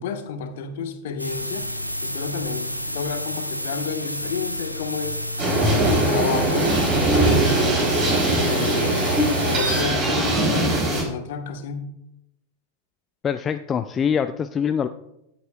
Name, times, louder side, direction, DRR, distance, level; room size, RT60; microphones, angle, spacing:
voice 1, 0.0-1.6 2.0-5.2 5.5-6.8 7.1-8.0 8.3-9.0 9.4-10.7 11.0-11.8, left 6 dB, 55° left, 6 dB, 1.2 m, -30 dB
sound 1, 1.2-9.8, left 1 dB, 90° right, 0.8 m, -29 dB
sound 2, 5.4-11.0, right 2 dB, 30° right, 3.8 m, -21 dB
voice 2, 13.2-14.9, left 7 dB, 25° left, 9 dB, 0.4 m, -24 dB
15.0 x 8.4 x 2.4 m, 0.85 s
figure-of-eight pair, 90°, 0 cm